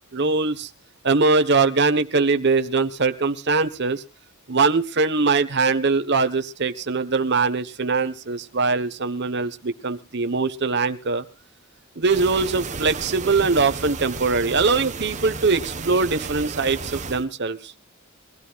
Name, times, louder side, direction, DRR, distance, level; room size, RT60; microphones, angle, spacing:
voice 1, 0.1-0.7 1.0-4.0 4.5-11.2 12.0-17.7, right 4 dB, 55° right, 10 dB, 1.2 m, -22 dB
sound 1, 12.0-17.2, right 4 dB, 35° right, 1.3 m, -33 dB
23.5 x 15.5 x 2.4 m, 0.31 s
head